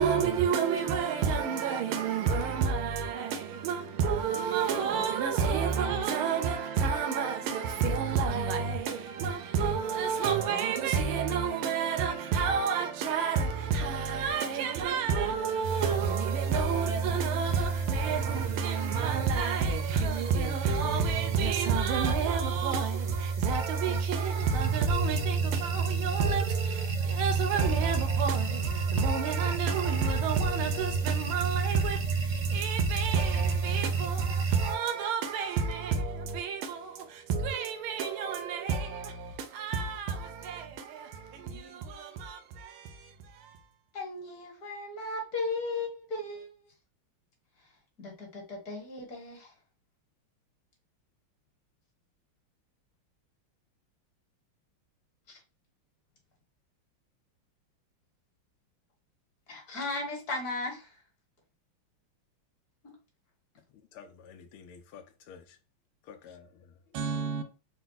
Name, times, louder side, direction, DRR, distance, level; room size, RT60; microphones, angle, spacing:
voice 1, 0.0-43.6 66.9-67.4, right 6 dB, 80° right, 1.6 m, -30 dB
voice 2, 4.7-5.0 7.1-9.0 22.0-22.5 23.8-24.0 41.5-41.6 43.9-46.7 48.0-49.5 55.3-55.4 59.5-60.9 62.8-62.9, left 2 dB, 45° left, 2.1 m, -38 dB
sound 1, 15.6-34.8, right 5 dB, 50° right, 0.9 m, -31 dB
voice 3, 63.9-65.6 66.1-66.7, left 7 dB, 80° left, 1.5 m, -50 dB
4.5 x 2.3 x 3.9 m
omnidirectional pair, 2.3 m